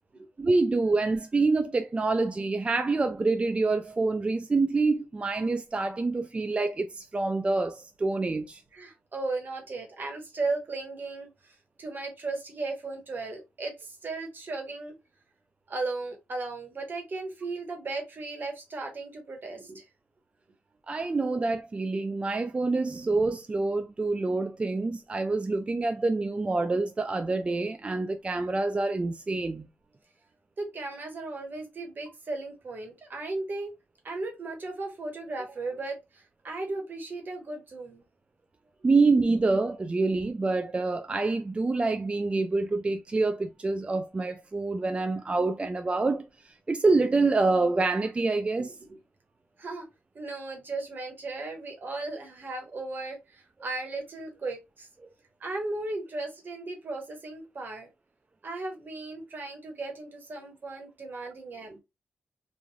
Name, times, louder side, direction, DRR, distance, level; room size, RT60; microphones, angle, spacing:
voice 1, 0.4-8.6 20.9-29.7 38.8-48.7, right 3 dB, 30° right, 0.3 m, -26 dB
voice 2, 8.7-14.9 15.7-19.8 30.6-33.7 34.0-38.0 48.9-49.0 49.6-49.9 50.1-54.9 55.4-57.9 58.4-61.8, right 3 dB, 50° right, 1.3 m, -36 dB
3.1 x 2.5 x 2.2 m
cardioid pair, 65°, 4 cm